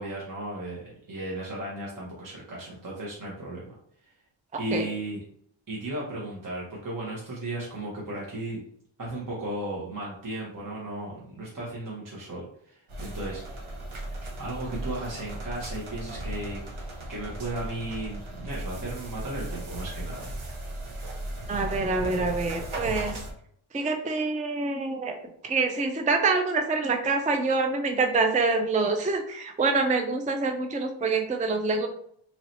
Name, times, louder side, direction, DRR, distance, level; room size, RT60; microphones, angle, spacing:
voice 1, 0.0-3.7 4.0-4.1 4.6-5.2 5.7-8.6 9.0-13.4 14.4-16.6 17.1-20.3, right 1 dB, 40° right, -4 dB, 1.0 m, -35 dB
sound 1, 12.9-23.3, right 1 dB, 85° right, 0.9 m, -36 dB
voice 2, 21.5-23.2 23.7-25.2 25.4-31.9, right 3 dB, 15° right, 5 dB, 0.4 m, -26 dB
3.1 x 2.8 x 4.0 m, 0.65 s
wide cardioid pair, 120°, 48 cm